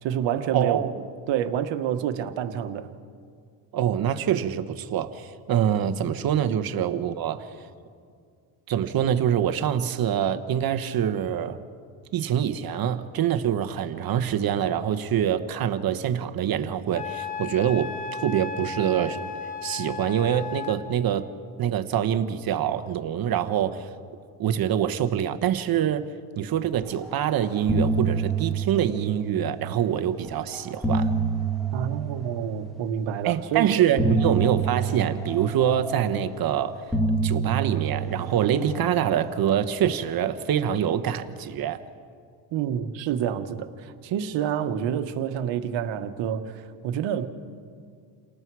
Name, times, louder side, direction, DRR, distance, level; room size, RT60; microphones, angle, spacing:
voice 1, 0.0-0.8 1.3-2.9 31.7-34.2 42.5-47.3, right 9 dB, 75° right, 9 dB, 1.3 m, -28 dB
voice 2, 0.5-0.9 3.7-7.5 8.7-11.6 12.1-19.2 19.6-21.3 21.6-23.9 24.4-26.1 26.4-31.1 33.2-36.8 37.2-41.8, right 9 dB, 50° right, 9 dB, 1.1 m, -25 dB
Wind instrument woodwind instrument, 16.9-20.8, left 6 dB, 60° left, 2.9 m, -35 dB
sound 1, 27.0-27.3 27.5-29.8 30.5-33.0 34.0-36.4 36.9-39.5, right 3 dB, ahead, 2.1 m, -28 dB
29.0 x 19.0 x 4.8 m, 2.2 s
cardioid pair, 120°, 45 cm